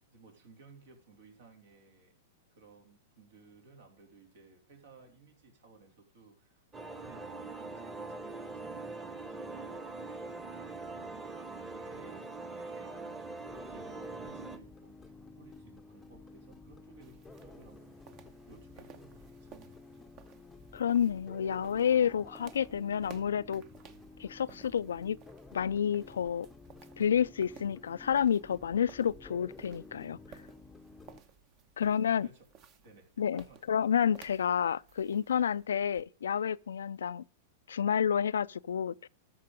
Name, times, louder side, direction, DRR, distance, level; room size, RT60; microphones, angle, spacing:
voice 1, 0.1-2.2 2.5-15.0 15.3-20.1 31.8-32.5 32.8-33.6, right 4 dB, 75° right, 3.4 m, -58 dB
sound 1, 6.7-14.6, right 3 dB, 15° right, 1.2 m, -42 dB
sound 2, 13.4-31.2, left 3 dB, 10° left, 0.7 m, -52 dB
sound 3, 17.0-36.0, right 7 dB, 40° right, 1.0 m, -57 dB
voice 2, 20.7-23.6 24.2-25.2 25.5-26.5 27.0-30.2 31.8-32.3 33.2-37.2 37.7-39.1, left 8 dB, 90° left, 0.3 m, -29 dB
13.5 x 4.6 x 5.1 m
hypercardioid pair, 130°, 0 cm